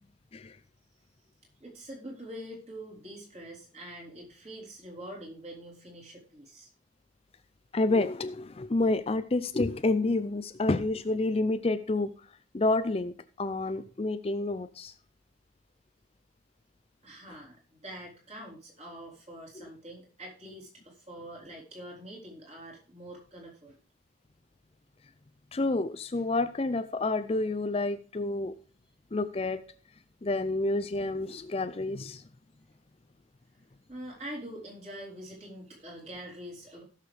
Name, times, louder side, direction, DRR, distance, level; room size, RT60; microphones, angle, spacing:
voice 1, 1.6-6.7 17.0-23.8 33.9-36.8, right 1 dB, 35° right, 3.9 m, -45 dB
voice 2, 7.7-12.1 12.5-14.9 19.6-19.7 25.5-28.6 29.1-29.6 30.2-32.2, left 2 dB, 30° left, 0.5 m, -29 dB
16.5 x 6.6 x 3.3 m
head